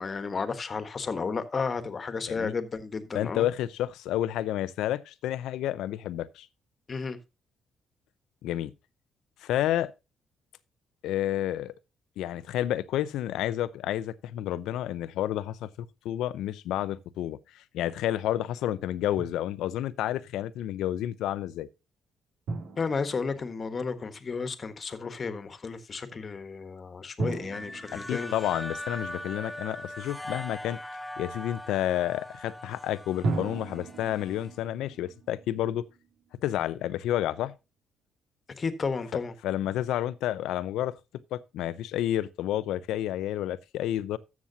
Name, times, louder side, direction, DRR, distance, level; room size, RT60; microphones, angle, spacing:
voice 1, 0.0-3.5 6.9-7.2 22.8-28.3 38.6-39.3, left 4 dB, 40° left, 1.4 m, -33 dB
voice 2, 3.1-6.5 8.4-8.7 9.4-9.9 11.0-11.7 12.2-21.7 27.9-30.8 31.2-35.9 36.4-37.5 39.4-40.9 41.3-44.2, left 12 dB, 90° left, 0.6 m, -30 dB
Drum, 19.2-19.9 22.5-24.2 27.2-29.7 33.2-36.4, right 3 dB, 85° right, 3.1 m, -37 dB
sound 1, 27.5-34.6, left 1 dB, 10° left, 0.6 m, -40 dB
13.5 x 7.2 x 2.8 m
cardioid pair, 90°, 0 cm